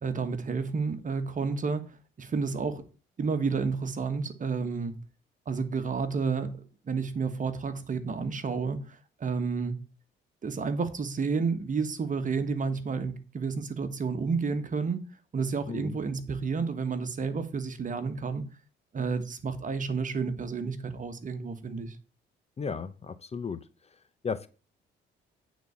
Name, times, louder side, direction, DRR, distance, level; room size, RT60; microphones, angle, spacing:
voice 1, 0.0-2.8 3.2-4.9 5.5-6.6 6.8-9.8 10.4-15.0 15.3-18.4 18.9-22.0, right 5 dB, 40° right, 1.4 m, -31 dB
voice 2, 15.7-16.0 22.6-23.7 24.2-24.5, left 5 dB, 30° left, 0.7 m, -34 dB
9.1 x 4.1 x 7.0 m
cardioid pair, 90°, 20 cm